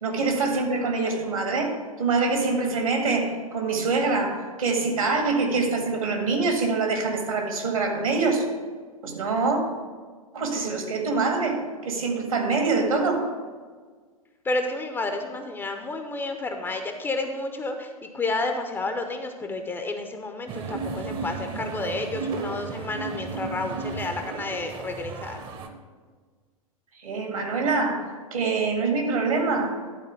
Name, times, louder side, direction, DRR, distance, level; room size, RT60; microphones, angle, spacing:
voice 1, 0.0-8.5 9.0-9.6 10.3-13.3 26.9-29.8, right 3 dB, 70° right, 3 dB, 2.0 m, -25 dB
voice 2, 14.4-25.4, left 2 dB, 10° left, 5 dB, 0.7 m, -31 dB
sound 1, 20.5-25.7, right 4 dB, 25° right, 0.9 m, -34 dB
11.5 x 4.3 x 6.8 m, 1.5 s
figure-of-eight pair, 100°, 19 cm